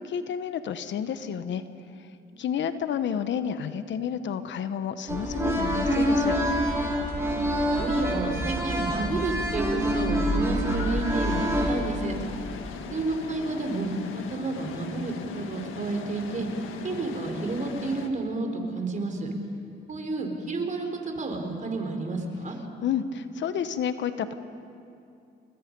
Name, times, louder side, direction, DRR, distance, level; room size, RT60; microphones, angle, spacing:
voice 1, 0.0-1.6 2.4-6.4 22.8-24.3, left 8 dB, 65° left, 11 dB, 1.1 m, -30 dB
sound 1, 5.1-11.7, equal, 15° right, 5.4 m, -26 dB
voice 2, 7.8-12.1 12.9-13.9 14.3-16.5 16.8-19.3 19.9-22.6, right 3 dB, 40° right, 4 dB, 3.9 m, -30 dB
sound 2, 10.6-18.1, left 6 dB, 85° left, 1.7 m, -39 dB
29.0 x 21.0 x 5.4 m, 2.6 s
cardioid pair, 90°, 20 cm